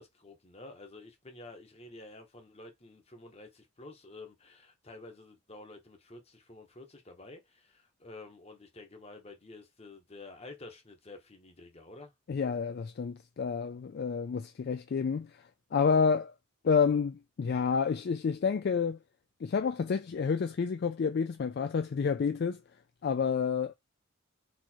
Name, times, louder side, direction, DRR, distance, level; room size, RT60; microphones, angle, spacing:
voice 1, 0.0-12.1, left 2 dB, 30° left, 1.1 m, -50 dB
voice 2, 12.3-16.3 16.6-19.0 19.4-22.6 23.0-23.7, left 6 dB, 50° left, 0.3 m, -29 dB
4.3 x 2.5 x 4.4 m
head